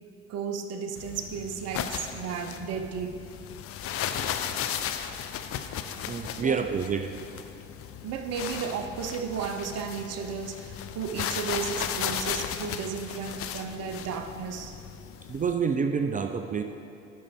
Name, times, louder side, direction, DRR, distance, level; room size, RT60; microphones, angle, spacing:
voice 1, 0.3-3.2 6.4-6.6 8.0-14.7, right 6 dB, 50° right, 6 dB, 0.8 m, -34 dB
sound 1, 1.0-15.5, left 9 dB, 45° left, 0.5 m, -35 dB
voice 2, 6.1-7.1 15.3-16.6, right 6 dB, 25° right, 6 dB, 0.4 m, -28 dB
11.0 x 5.3 x 3.5 m, 2.6 s
hypercardioid pair, 60°, 32 cm